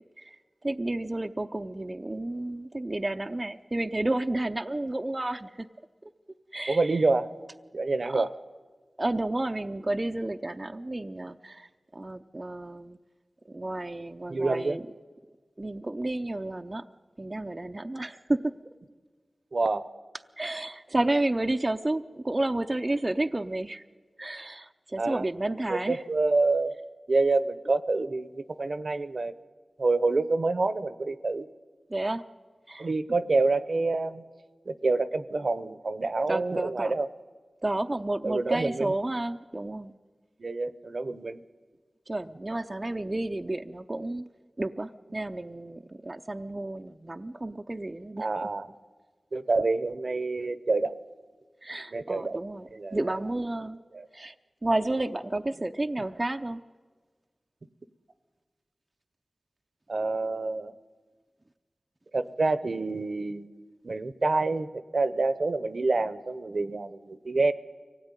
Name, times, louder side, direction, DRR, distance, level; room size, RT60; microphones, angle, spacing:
voice 1, 0.2-5.7 6.0-6.1 6.5-7.0 8.1-8.2 9.0-13.0 13.5-14.8 15.6-16.8 17.2-18.5 20.4-23.8 24.2-26.0 31.9-32.2 32.7-32.9 36.3-36.9 37.6-39.9 42.1-44.3 44.6-48.3 51.6-53.8 54.1-54.3 54.6-56.6, right 2 dB, 30° right, 6 dB, 0.6 m, -31 dB
voice 2, 6.7-7.3 7.7-8.3 14.3-14.8 19.5-19.9 25.0-25.2 25.7-26.8 27.1-29.3 29.8-31.5 32.8-34.2 34.7-37.1 38.2-38.9 40.4-41.4 48.2-48.7 49.3-51.0 51.9-52.4 52.7-53.0 53.9-54.1 59.9-60.7 62.1-63.5 63.8-67.5, right 3 dB, 60° right, 13 dB, 0.9 m, -27 dB
24.0 x 17.0 x 9.8 m, 1.5 s
wide cardioid pair, 75°, 0 cm